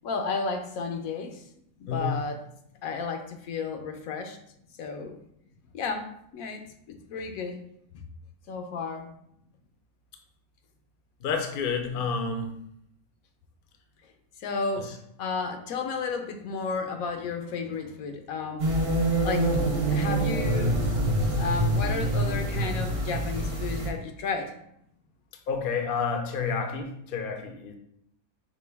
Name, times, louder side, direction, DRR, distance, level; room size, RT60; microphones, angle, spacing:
voice 1, 0.0-1.4 1.8-2.4 2.8-4.4 4.8-5.1 5.7-6.6 6.9-7.6 8.5-9.1 11.9-12.0 14.4-14.9 15.2-18.9 19.2-19.5 19.9-20.8 21.4-24.5, left 4 dB, 75° left, 6 dB, 1.0 m, -32 dB
voice 2, 1.9-2.2 11.2-12.5 25.5-27.8, left 5 dB, 60° left, 4 dB, 0.6 m, -29 dB
sound 1, 18.6-23.9, right 1 dB, 35° right, 0.5 m, -26 dB
5.3 x 2.2 x 3.3 m, 0.72 s
omnidirectional pair, 1.5 m